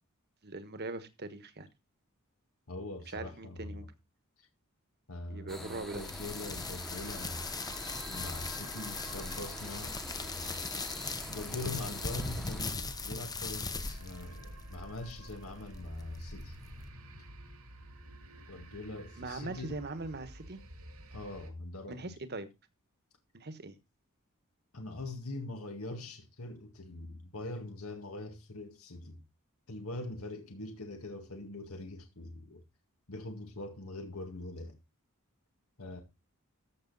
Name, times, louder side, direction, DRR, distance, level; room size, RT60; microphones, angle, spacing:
voice 1, 0.4-1.7 3.1-3.8 5.3-6.0 19.2-20.6 21.9-22.5 23.3-23.8, right 3 dB, 50° right, 1.3 m, -41 dB
voice 2, 2.7-3.9 4.4-4.5 5.1-7.4 8.1-10.6 11.3-16.6 18.5-19.8 21.1-22.1 24.7-29.2 29.7-32.6 33.1-34.8 35.8-36.0, left 2 dB, 85° left, 2.0 m, -43 dB
sound 1, 5.5-12.7, equal, ahead, 1.1 m, -46 dB
sound 2, 5.9-16.9, left 4 dB, 20° left, 0.8 m, -40 dB
sound 3, 6.9-21.5, right 1 dB, 85° right, 2.4 m, -50 dB
13.5 x 6.6 x 4.0 m
head